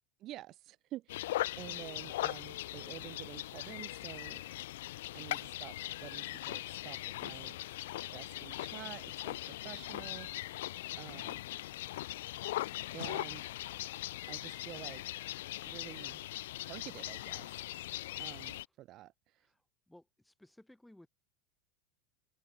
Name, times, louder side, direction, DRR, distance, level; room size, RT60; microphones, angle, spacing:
voice 1, 0.2-4.4 5.1-7.6 8.1-10.7 10.9-11.4 12.9-13.5 14.3-15.0 15.7-16.3 16.6-17.6 18.2-19.5, right 15 dB, 45° right, 0.5 m, -49 dB
sound 1, 1.1-18.6, left 16 dB, 80° left, 0.9 m, -40 dB
voice 2, 19.9-21.1, left 1 dB, 5° left, 7.3 m, -59 dB
open air
supercardioid pair, 115°, 0 cm